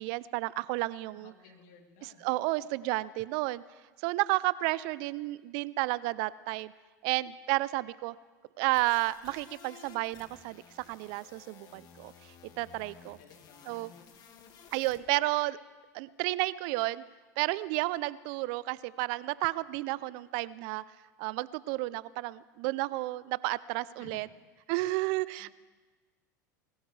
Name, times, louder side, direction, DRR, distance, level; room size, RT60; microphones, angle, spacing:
voice 1, 0.0-1.3 2.2-3.6 4.0-6.7 7.0-8.1 8.6-12.1 12.6-13.2 13.7-13.9 14.7-15.6 15.9-17.0 17.4-20.8 21.2-24.3 24.7-25.5, right 20 dB, 60° right, 19 dB, 0.5 m, -31 dB
voice 2, 1.1-2.4 13.0-14.0 24.0-24.3 25.4-25.5, left 6 dB, 65° left, 2 dB, 2.9 m, -56 dB
sound 1, 8.7-15.0, left 7 dB, 45° left, 2.1 m, -54 dB
21.5 x 17.0 x 3.4 m, 1.3 s
hypercardioid pair, 85°, 10 cm